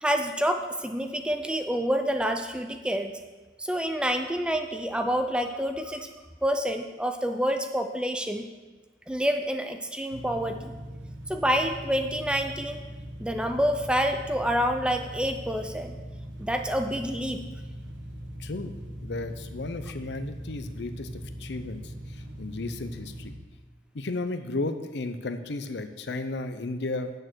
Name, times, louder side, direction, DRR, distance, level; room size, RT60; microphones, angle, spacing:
voice 1, 0.0-3.1 3.6-6.1 6.4-8.5 9.1-10.7 11.3-12.8 13.2-16.0 16.4-17.4, equal, 5° right, 6 dB, 0.5 m, -27 dB
sound 1, 10.1-23.4, equal, 75° right, 1.4 m, -40 dB
voice 2, 18.4-18.7 19.0-23.3 23.9-27.1, left 2 dB, 60° left, 9 dB, 0.6 m, -34 dB
8.6 x 6.8 x 6.2 m, 1.2 s
head